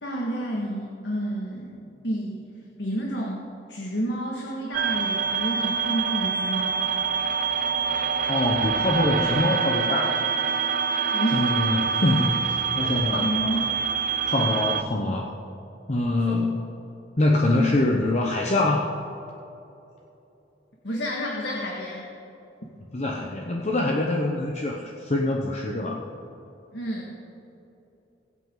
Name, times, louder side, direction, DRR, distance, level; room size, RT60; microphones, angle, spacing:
voice 1, 0.0-2.4 2.8-6.8 11.1-11.5 13.1-13.7 16.2-16.4 20.8-22.1 26.7-27.1, equal, 75° left, -3 dB, 1.9 m, -30 dB
sound 1, 4.7-14.8, right 6 dB, 50° right, 0.6 m, -26 dB
voice 2, 8.3-10.1 11.3-13.3 14.2-15.3 15.9-16.6 17.2-18.9 22.9-26.0, left 2 dB, 40° left, -1 dB, 0.9 m, -24 dB
21.5 x 8.1 x 3.9 m, 2.9 s
head